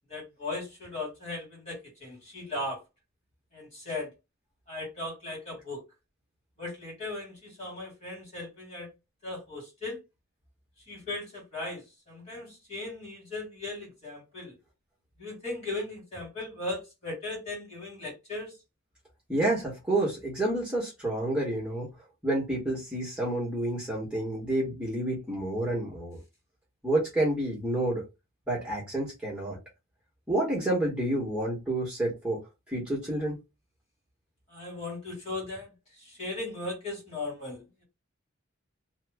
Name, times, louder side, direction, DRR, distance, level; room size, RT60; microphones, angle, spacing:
voice 1, 0.1-2.8 3.5-4.1 4.7-5.8 6.6-8.9 9.2-10.0 10.9-14.6 15.2-18.5 34.5-35.7 36.0-37.8, left 2 dB, 35° left, 2.1 m, -37 dB
voice 2, 19.3-21.9 22.2-26.2 26.8-28.0 28.5-29.6 30.3-32.4 32.7-33.4, right 1 dB, 5° right, 1.1 m, -29 dB
2.9 x 2.2 x 3.5 m
head